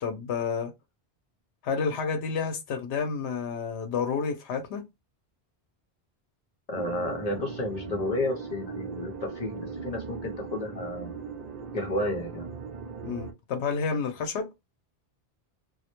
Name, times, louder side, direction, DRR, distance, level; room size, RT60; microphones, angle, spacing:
voice 1, 0.0-0.7 1.6-4.8 13.0-14.5, left 5 dB, 80° left, 0.8 m, -30 dB
voice 2, 6.7-11.1 11.7-12.5, left 1 dB, 45° left, 0.7 m, -31 dB
sound 1, 6.7-13.3, right 5 dB, 55° right, 0.5 m, -39 dB
2.2 x 2.0 x 2.8 m
omnidirectional pair, 1.1 m